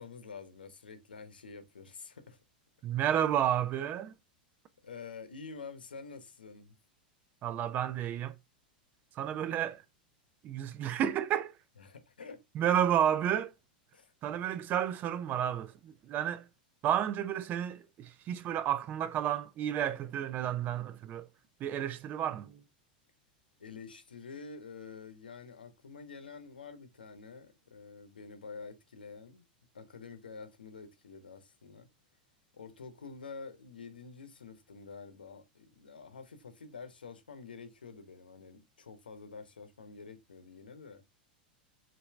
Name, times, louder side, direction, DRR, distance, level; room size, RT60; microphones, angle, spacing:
voice 1, 0.0-2.4 4.8-6.8 11.8-12.4 13.9-14.1 23.6-29.5 29.7-31.9 32.5-41.0, left 5 dB, 85° left, 0.8 m, -48 dB
voice 2, 2.8-4.1 7.4-8.4 9.1-9.8 10.4-11.5 12.5-13.5 14.2-16.5 16.8-21.3 21.6-22.6, right 10 dB, 35° right, 0.5 m, -31 dB
5.6 x 2.7 x 3.2 m
hypercardioid pair, 95°, 5 cm